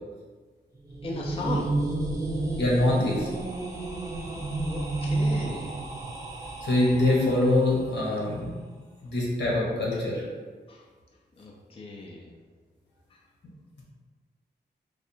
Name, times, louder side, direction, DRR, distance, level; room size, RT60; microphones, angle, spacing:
sound 1, 0.7-7.7, right 2 dB, 20° right, 0.5 m, -31 dB
voice 1, 1.0-1.7 4.6-5.7 10.7-10.8 11.3-12.3 13.1-13.2, left 2 dB, 30° left, -2 dB, 0.5 m, -36 dB
voice 2, 2.6-3.3 6.6-8.6 9.0-10.2, left 1 dB, 85° left, -4 dB, 1.2 m, -24 dB
3.4 x 2.4 x 4.3 m, 1.4 s
wide cardioid pair, 140°, 18 cm